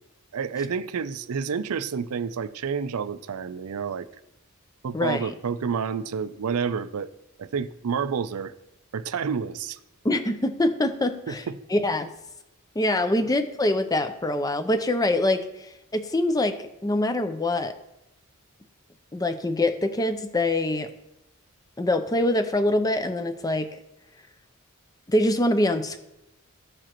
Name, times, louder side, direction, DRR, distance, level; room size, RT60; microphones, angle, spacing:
voice 1, 0.3-4.1 4.8-7.1 7.4-8.5 8.9-9.8 11.3-11.4, right 6 dB, 85° right, 14 dB, 0.4 m, -29 dB
voice 2, 10.0-11.4 11.7-12.1 12.8-17.7 19.1-20.9 21.8-23.7 25.1-26.0, left 1 dB, 15° left, 9 dB, 0.5 m, -24 dB
14.5 x 4.9 x 3.0 m, 0.90 s
head